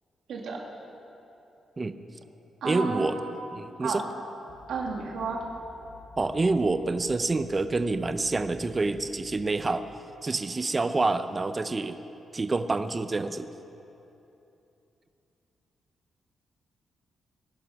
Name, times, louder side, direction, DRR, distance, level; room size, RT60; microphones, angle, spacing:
voice 1, 0.3-0.6 2.6-3.1 3.8-4.1 4.7-5.5, right 4 dB, 75° right, -1 dB, 2.1 m, -31 dB
voice 2, 2.6-3.2 3.5-4.0 6.2-9.8 10.2-12.0 12.3-13.5, right 3 dB, 20° right, 10 dB, 0.5 m, -27 dB
sound 1, 4.5-9.4, left 2 dB, 55° left, 4.7 m, -51 dB
20.0 x 11.0 x 5.8 m, 2.9 s
wide cardioid pair, 155°, 0 cm